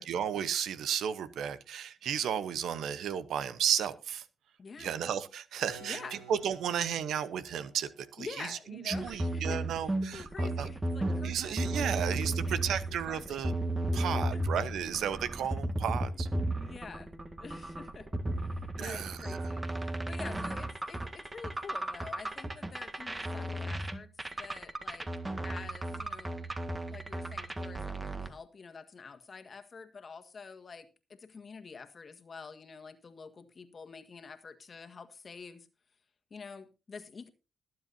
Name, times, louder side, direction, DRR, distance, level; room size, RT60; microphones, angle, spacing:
voice 1, 0.0-4.3 4.8-10.7 11.2-13.5 13.9-16.3 18.8-19.5, right 9 dB, 75° right, 0.9 m, -34 dB
voice 2, 4.6-4.9 5.8-6.3 8.2-12.8 13.0-13.5 13.9-14.4 16.6-17.1 17.4-18.1 18.5-19.6 20.1-25.1 25.4-26.4 26.9-35.7 36.3-37.3, left 5 dB, 45° left, 1.7 m, -47 dB
Keyboard (musical), 5.7-11.3, right 5 dB, 90° right, 4.0 m, -56 dB
sound 1, 8.9-28.3, right 1 dB, 25° right, 1.8 m, -34 dB
21.0 x 7.8 x 2.7 m
supercardioid pair, 50°, 0 cm